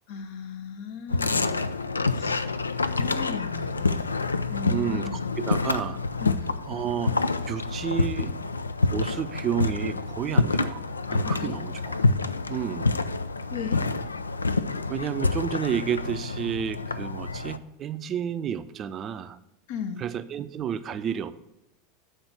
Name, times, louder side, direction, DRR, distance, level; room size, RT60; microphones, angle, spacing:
voice 1, 0.1-1.7 2.1-2.5 2.9-5.3 6.2-6.5 11.2-11.6 13.5-13.8 19.7-20.1, left 5 dB, 55° left, 8 dB, 0.9 m, -36 dB
sound 1, 1.1-17.6, left 3 dB, 85° left, 0.3 m, -27 dB
voice 2, 4.7-6.0 6.7-7.1 7.5-8.3 8.8-10.8 11.1-12.0 12.5-12.9 14.9-19.4 20.0-21.3, right 8 dB, 35° right, 10 dB, 0.5 m, -31 dB
7.7 x 4.3 x 6.6 m, 0.88 s
figure-of-eight pair, 85°, 0 cm